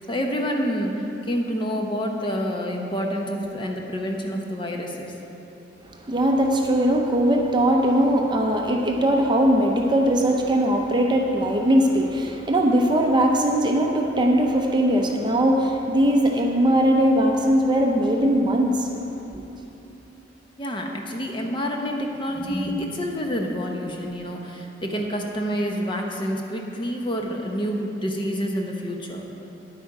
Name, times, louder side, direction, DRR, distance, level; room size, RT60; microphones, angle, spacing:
voice 1, 0.0-5.1 20.6-29.2, equal, 25° left, 1 dB, 0.8 m, -28 dB
voice 2, 5.9-18.9 19.3-19.4, right 1 dB, 25° right, 1 dB, 0.7 m, -20 dB
9.8 x 8.4 x 4.8 m, 2.9 s
head